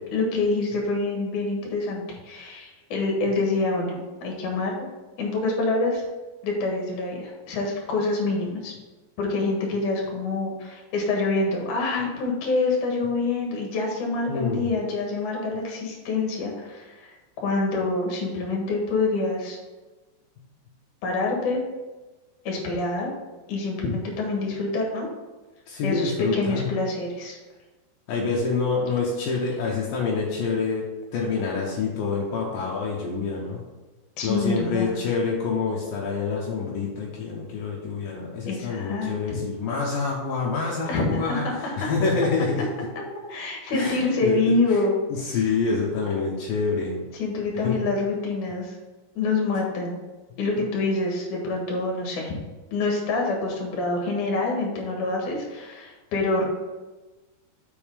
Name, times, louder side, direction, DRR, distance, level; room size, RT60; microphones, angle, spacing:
voice 1, 0.1-4.7 5.2-6.0 6.4-8.7 9.2-19.6 21.0-21.6 22.4-23.1 23.5-25.1 25.8-27.4 34.2-35.0 38.5-39.1 40.9-41.9 43.3-45.0 47.2-48.8 49.2-50.0 50.4-52.3 52.7-56.4, left 3 dB, 60° left, 0 dB, 2.2 m, -26 dB
voice 2, 14.3-14.7 25.7-26.7 28.1-30.8 31.1-33.6 34.2-42.7 43.7-44.8 45.1-47.0 47.6-47.8, left 4 dB, 80° left, -3 dB, 2.0 m, -27 dB
6.3 x 5.4 x 5.2 m, 1.2 s
omnidirectional pair, 5.5 m